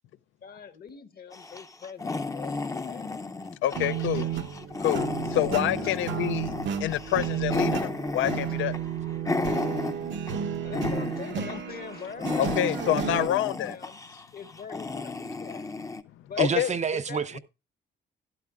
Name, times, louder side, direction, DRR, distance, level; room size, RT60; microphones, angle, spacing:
voice 1, 0.4-3.2 3.6-4.3 5.8-6.0 10.6-14.0 14.3-15.7 16.3-16.5 16.9-17.4, left 6 dB, 50° left, 1.2 m, -43 dB
sound 1, 1.3-10.4 10.7-11.5 11.8-16.0, left 3 dB, 15° left, 0.6 m, -33 dB
voice 2, 3.6-4.3 4.8-5.1 5.3-6.5 6.8-8.7 12.4-13.8 16.4-16.8, left 13 dB, 75° left, 0.5 m, -27 dB
sound 2, 3.7-13.3, right 8 dB, 65° right, 0.9 m, -32 dB
voice 3, 16.4-17.4, right 6 dB, 35° right, 0.6 m, -28 dB
12.0 x 11.5 x 2.4 m
cardioid pair, 90°, 20 cm